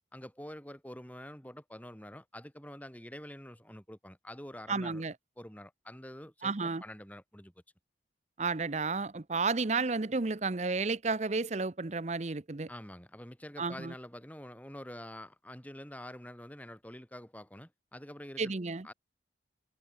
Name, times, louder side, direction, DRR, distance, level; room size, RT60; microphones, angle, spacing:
voice 1, 0.1-5.1 5.4-7.5 12.7-18.5 18.8-18.9, left 1 dB, 10° left, 5.0 m, -47 dB
voice 2, 4.7-5.1 6.4-6.8 8.4-12.7 13.6-13.9 18.4-18.9, right 4 dB, 40° right, 0.7 m, -32 dB
head